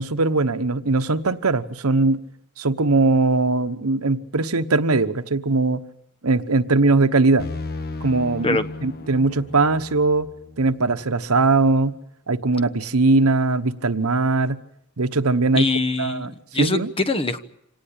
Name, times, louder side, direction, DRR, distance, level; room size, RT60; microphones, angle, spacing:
voice 1, 0.0-2.2 2.6-5.8 6.2-7.5 8.0-10.3 10.6-12.0 12.3-14.6 15.0-15.7 16.0-16.9, right 3 dB, 80° right, 12 dB, 1.1 m, -20 dB
sound 1, 7.4-11.1, left 2 dB, 45° left, 1.5 m, -35 dB
voice 2, 15.5-17.4, left 3 dB, 25° left, 11 dB, 1.2 m, -23 dB
26.0 x 18.5 x 8.8 m, 0.79 s
head